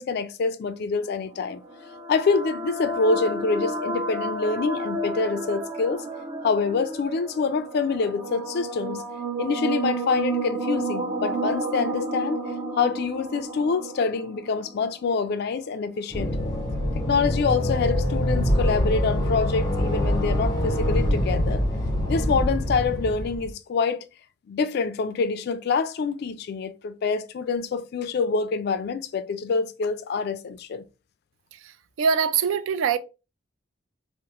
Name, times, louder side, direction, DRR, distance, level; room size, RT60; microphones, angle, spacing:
voice 1, 0.0-1.6 2.1-6.0 6.4-9.0 9.4-12.4 12.8-16.3 17.0-21.6 22.1-24.1 24.5-30.8, left 4 dB, 55° left, 0.3 m, -26 dB
sound 1, 1.3-15.4, right 2 dB, 25° right, 0.5 m, -31 dB
sound 2, 16.1-23.5, left 1 dB, 20° left, 0.8 m, -24 dB
voice 2, 31.5-33.0, right 6 dB, 80° right, 0.3 m, -24 dB
2.9 x 2.0 x 2.9 m
head